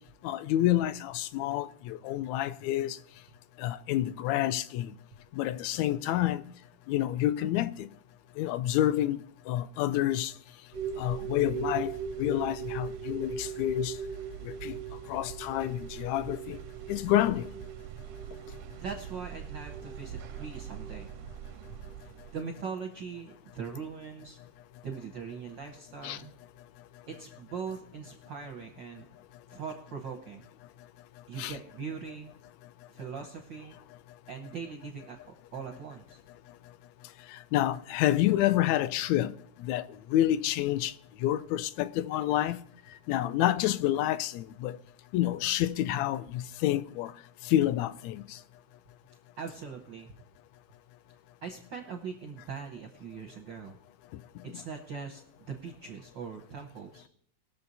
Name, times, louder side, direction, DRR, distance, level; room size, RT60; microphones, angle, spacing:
voice 1, 0.2-3.0 3.6-4.9 5.3-6.4 6.9-7.9 8.4-9.2 9.5-10.3 11.0-11.9 12.2-13.9 14.4-14.8 15.1-16.6 16.9-17.5 26.0-26.2 31.4-31.5 37.3-39.3 39.6-40.9 41.2-42.6 43.1-44.8 45.1-47.1 47.4-48.4, left 13 dB, 80° left, 1.8 m, -28 dB
sound 1, 10.7-22.4, right 8 dB, 85° right, 2.1 m, -40 dB
voice 2, 18.8-21.1 22.0-24.4 24.8-26.3 27.1-29.0 29.5-30.4 31.3-32.3 32.9-33.8 34.3-36.2 49.4-50.1 51.4-53.8 54.5-57.1, right 6 dB, 70° right, 1.1 m, -41 dB
20.0 x 6.8 x 4.1 m
omnidirectional pair, 3.3 m